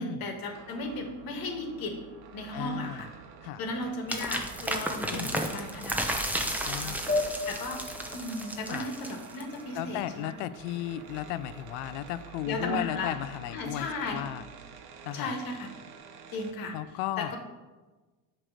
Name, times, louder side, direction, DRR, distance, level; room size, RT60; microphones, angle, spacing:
voice 1, 0.0-2.0 2.3-3.1 3.6-6.2 6.8-7.0 7.5-7.8 8.1-10.3 12.4-13.2 13.5-14.2 15.1-15.7 16.3-16.8 17.2-17.4, left 2 dB, 55° left, 4 dB, 1.5 m, -35 dB
sound 1, 0.5-16.5, right 7 dB, 60° right, 1.0 m, -48 dB
voice 2, 2.5-3.0 3.4-3.6 5.1-5.4 6.7-7.0 8.7-8.9 9.7-14.4 15.1-15.4 16.7-17.3, left 13 dB, 75° left, 15 dB, 0.5 m, -35 dB
sound 2, 4.1-9.6, right 1 dB, 5° right, 0.7 m, -33 dB
sound 3, 7.1-10.0, left 2 dB, 20° left, 1.4 m, -35 dB
7.6 x 3.3 x 6.3 m, 1.2 s
supercardioid pair, 100°, 42 cm